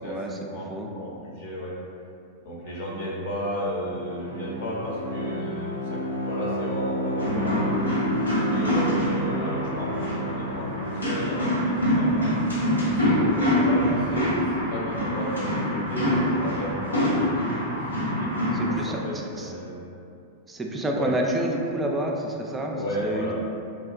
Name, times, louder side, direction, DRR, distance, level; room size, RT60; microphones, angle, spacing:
voice 1, 0.0-0.4 0.7-0.9 18.5-19.5 20.5-23.3, right 1 dB, 15° right, 0 dB, 0.4 m, -29 dB
voice 2, 0.9-1.7 2.4-6.0 6.2-7.7 8.5-12.4 12.9-17.4 18.2-19.8 20.9-21.1 22.7-23.3, equal, 60° left, -4 dB, 0.7 m, -33 dB
Bowed string instrument, 3.8-11.5, equal, 90° right, 0.4 m, -30 dB
sound 1, 7.2-18.8, equal, 90° left, 0.8 m, -25 dB
3.3 x 2.7 x 2.4 m, 2.5 s
figure-of-eight pair, 95°, 0 cm